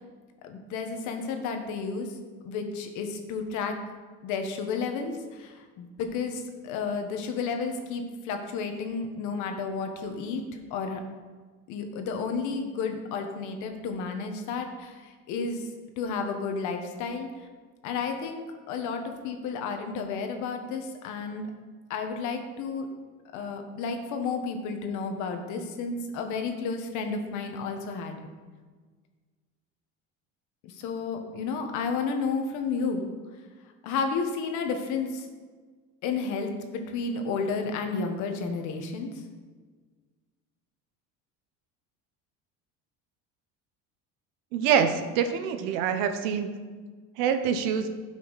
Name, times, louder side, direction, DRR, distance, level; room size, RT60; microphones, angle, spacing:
voice 1, 0.4-2.2 2.4-3.8 4.2-10.4 10.7-11.0 11.7-15.7 16.0-17.5 17.8-21.5 21.9-22.9 23.3-28.3 30.6-33.1 33.8-35.3 36.0-39.2, left 5 dB, 55° left, 5 dB, 1.4 m, -32 dB
voice 2, 44.5-46.5 47.2-47.9, right 7 dB, 85° right, 8 dB, 1.1 m, -25 dB
16.0 x 5.9 x 4.1 m, 1.5 s
cardioid pair, 175°, 35 cm